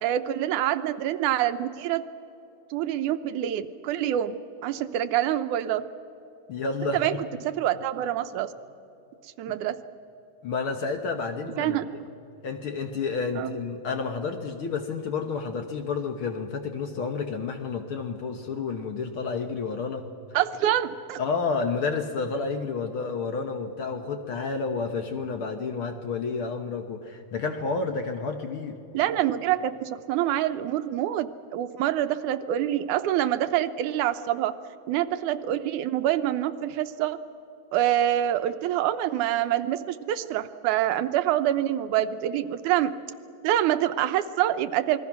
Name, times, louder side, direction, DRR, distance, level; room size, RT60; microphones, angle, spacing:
voice 1, 0.0-2.0 2.7-4.4 4.6-5.9 6.9-8.5 9.2-9.8 11.6-11.9 13.4-13.6 20.3-21.2 28.9-34.5 34.9-37.2 37.7-42.9 43.4-45.0, right 12 dB, 90° right, 10 dB, 2.3 m, -26 dB
voice 2, 6.5-7.2 9.5-9.6 10.4-11.8 12.4-20.0 21.2-28.8, left 4 dB, 60° left, 5 dB, 1.6 m, -30 dB
27.5 x 20.5 x 6.0 m, 2.8 s
omnidirectional pair, 3.4 m